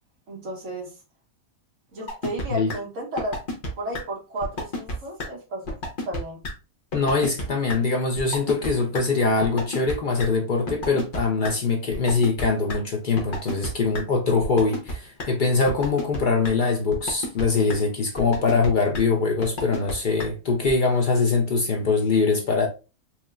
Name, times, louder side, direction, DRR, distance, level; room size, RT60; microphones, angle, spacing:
voice 1, 0.3-0.9 1.9-3.4 3.8-5.7 6.1-6.4, right 1 dB, 60° right, 1.6 m, -33 dB
sound 1, 2.1-2.4 2.7-2.8 3.2-3.7 3.9-4.0 4.4-4.9 5.2-5.3 5.7-6.2 6.4-6.5 6.9-7.4 7.7-7.8 8.2-8.7 8.9-9.0 9.4-9.9 10.2-10.3 10.7-11.5 11.9-12.8 13.2-13.7 13.9-14.0 14.4-14.9 15.2-15.3 15.7-16.2 16.4-16.5 16.9-17.4 17.7-17.8 18.2-18.7 18.9-19.0 19.4-19.9 20.2-20.3 20.7-20.8, left 2 dB, 40° left, 1.0 m, -30 dB
voice 2, 6.9-22.7, left 4 dB, 65° left, 0.4 m, -23 dB
4.4 x 2.8 x 2.4 m
omnidirectional pair, 1.5 m